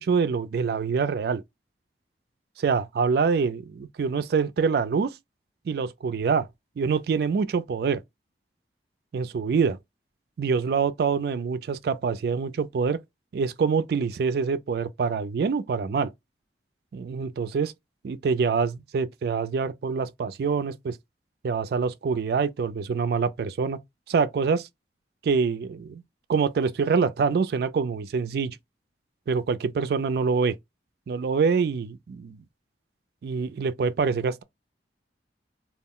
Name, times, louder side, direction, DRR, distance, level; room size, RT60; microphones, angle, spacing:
voice 1, 0.0-1.4 2.6-5.1 5.7-6.5 6.8-8.0 9.1-9.8 10.4-13.0 13.3-16.1 16.9-17.7 18.0-21.0 21.4-23.8 24.1-24.7 25.2-26.0 26.3-28.6 29.3-30.6 31.1-32.4 33.2-34.4, right 5 dB, 60° right, 0.3 m, -25 dB
2.3 x 2.0 x 3.6 m
head